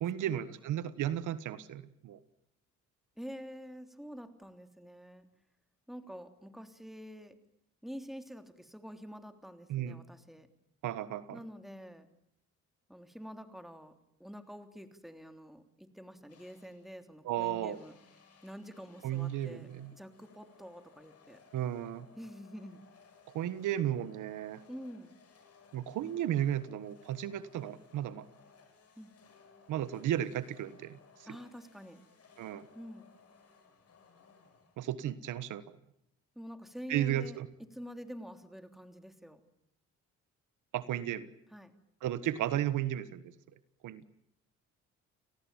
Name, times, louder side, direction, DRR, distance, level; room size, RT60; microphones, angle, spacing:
voice 1, 0.0-2.2 9.7-10.0 10.8-11.4 17.2-17.8 19.0-19.9 21.5-22.1 23.3-24.6 25.7-28.3 29.7-31.3 32.4-32.6 34.8-35.6 36.9-37.5 40.7-41.3 42.0-43.3 43.8-44.0, right 11 dB, 85° right, 14 dB, 1.5 m, -34 dB
voice 2, 3.2-5.3 5.9-7.3 7.8-10.5 11.3-12.1 12.9-13.9 14.2-17.9 18.4-21.4 22.2-22.8 24.7-25.1 29.0-29.1 31.3-32.0 32.7-33.1 36.3-37.4 37.7-39.4 41.5-41.7, equal, ahead, 7 dB, 3.2 m, -47 dB
sound 1, 16.3-17.0 17.7-35.1, left 5 dB, 55° left, 7.7 m, -62 dB
29.5 x 19.0 x 9.1 m, 0.76 s
cardioid pair, 90°, 30 cm